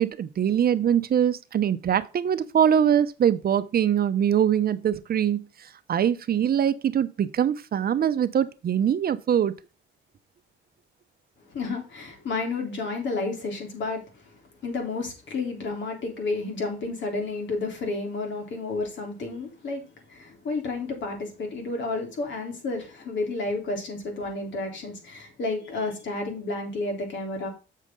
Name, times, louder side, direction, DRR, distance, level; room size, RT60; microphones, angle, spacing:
voice 1, 0.0-5.4 5.9-9.5, right 9 dB, 50° right, 0.8 m, -23 dB
voice 2, 11.5-14.1 14.6-19.8 20.1-27.5, left 3 dB, 70° left, 3.6 m, -31 dB
7.5 x 6.6 x 3.7 m
cardioid pair, 90°, 20 cm